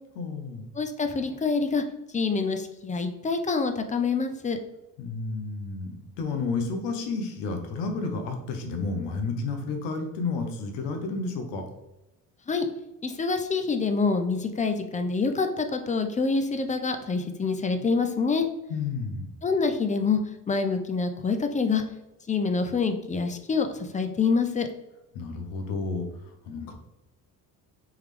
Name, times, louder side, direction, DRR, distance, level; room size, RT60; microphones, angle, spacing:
voice 1, 0.2-0.7 5.0-11.7 18.7-19.3 25.1-26.7, left 4 dB, 85° left, 5 dB, 0.8 m, -31 dB
voice 2, 0.7-1.8 2.1-4.6 12.5-12.7 13.0-18.5 19.4-20.2 20.5-21.8 22.3-24.7, left 4 dB, 20° left, 7 dB, 0.4 m, -26 dB
3.6 x 3.2 x 3.2 m, 0.97 s
supercardioid pair, 80°, 40 cm